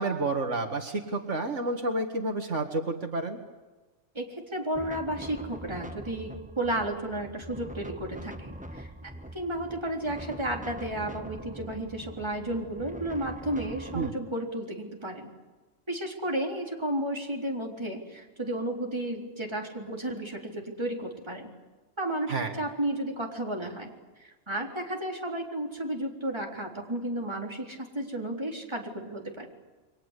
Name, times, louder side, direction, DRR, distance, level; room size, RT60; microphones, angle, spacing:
voice 1, 0.0-3.4 13.9-14.2 22.3-22.5, right 2 dB, 75° right, 5 dB, 2.3 m, -30 dB
voice 2, 4.1-6.3 6.6-15.3 15.9-21.5 22.0-23.9 24.2-29.5, right 1 dB, 20° right, 1 dB, 3.9 m, -33 dB
sound 1, 4.7-14.1, right 1 dB, 5° right, 1.2 m, -43 dB
29.0 x 23.5 x 8.4 m, 1.2 s
omnidirectional pair, 1.3 m